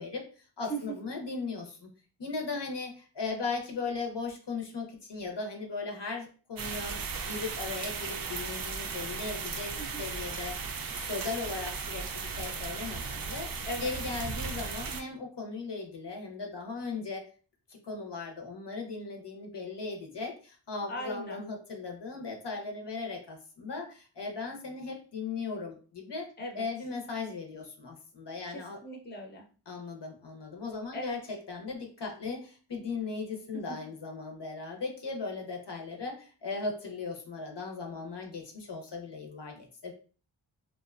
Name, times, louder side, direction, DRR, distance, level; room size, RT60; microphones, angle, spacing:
voice 1, 0.0-1.9 2.2-10.6 11.0-13.5 13.8-17.2 17.7-28.8 29.7-39.9, left 4 dB, 55° left, 2 dB, 0.7 m, -38 dB
sound 1, 6.6-15.0, right 5 dB, 45° right, 0.4 m, -36 dB
voice 2, 20.9-21.4 26.4-26.6 28.5-29.5 30.9-31.2 33.5-33.8, right 1 dB, 20° left, 2 dB, 0.6 m, -38 dB
2.6 x 2.2 x 2.4 m, 0.38 s
wide cardioid pair, 50°, 49 cm